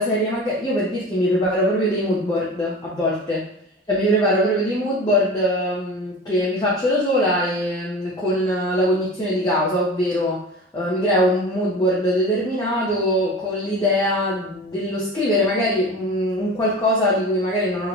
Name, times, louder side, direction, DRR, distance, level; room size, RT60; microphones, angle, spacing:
voice 1, 0.0-3.5 3.9-10.5 10.7-17.9, equal, 20° left, -6 dB, 0.5 m, -22 dB
2.9 x 2.1 x 2.5 m, 0.65 s
head